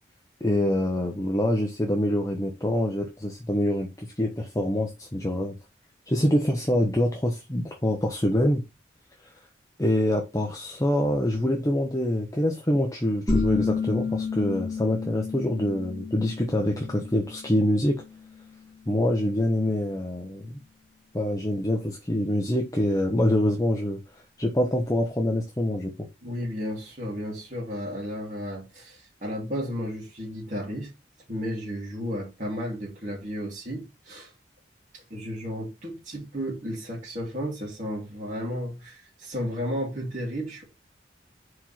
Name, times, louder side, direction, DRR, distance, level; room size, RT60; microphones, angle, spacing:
voice 1, 0.4-5.6 6.1-8.6 9.8-18.0 18.9-20.6 21.1-26.1, left 1 dB, 20° left, 0.9 m, -25 dB
sound 1, 13.3-18.7, left 4 dB, ahead, 2.8 m, -31 dB
voice 2, 26.2-30.9 31.3-34.3 34.9-40.6, equal, 40° right, 2.8 m, -33 dB
4.9 x 4.4 x 5.8 m
head